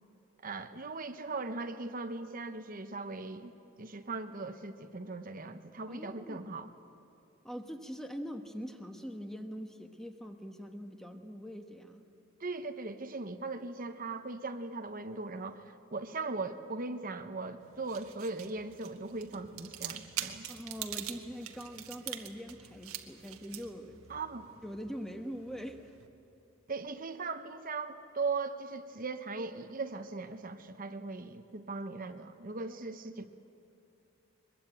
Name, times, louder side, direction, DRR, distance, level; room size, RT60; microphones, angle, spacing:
voice 1, 0.4-3.5 3.8-6.7 12.4-20.4 24.1-24.5 26.7-33.3, right 3 dB, 40° right, 8 dB, 0.9 m, -39 dB
voice 2, 5.9-6.6 7.4-12.1 20.5-24.0 24.6-25.9 32.7-32.8 33.1-33.3, equal, ahead, 5 dB, 1.2 m, -43 dB
sound 1, 17.6-26.1, right 11 dB, 90° right, 1.6 m, -45 dB
23.0 x 21.5 x 8.9 m, 2.8 s
head